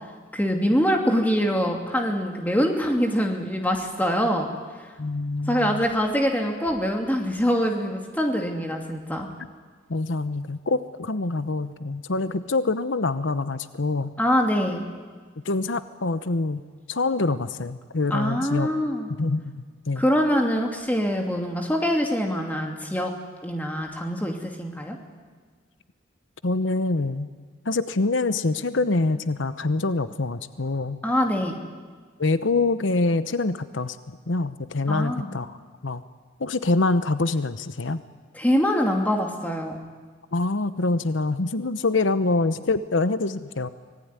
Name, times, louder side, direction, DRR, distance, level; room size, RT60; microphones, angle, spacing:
voice 1, 0.3-4.5 5.5-9.3 14.2-14.8 18.1-19.1 20.0-23.1 23.4-25.0 31.0-31.6 34.9-35.3 38.3-39.8, equal, 10° left, 2 dB, 2.7 m, -24 dB
voice 2, 5.0-5.8 9.9-14.1 15.4-16.6 16.9-18.8 19.2-19.5 19.9-20.1 26.4-27.3 27.6-31.0 32.2-35.6 35.8-36.0 36.4-38.0 40.3-43.7, left 3 dB, 85° left, 12 dB, 0.9 m, -25 dB
25.0 x 19.0 x 9.7 m, 1.5 s
head